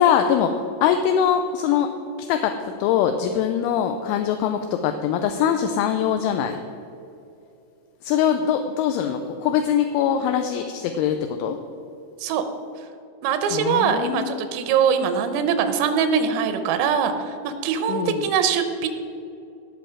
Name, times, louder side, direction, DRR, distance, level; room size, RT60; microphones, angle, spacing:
voice 1, 0.0-1.9 2.3-2.5 2.8-6.6 8.0-11.6 13.5-14.5 17.9-18.3, left 8 dB, 85° left, 6 dB, 2.9 m, -22 dB
voice 2, 13.2-18.9, right 6 dB, 90° right, 9 dB, 3.6 m, -22 dB
18.0 x 6.2 x 4.9 m, 2.7 s
omnidirectional pair, 5.9 m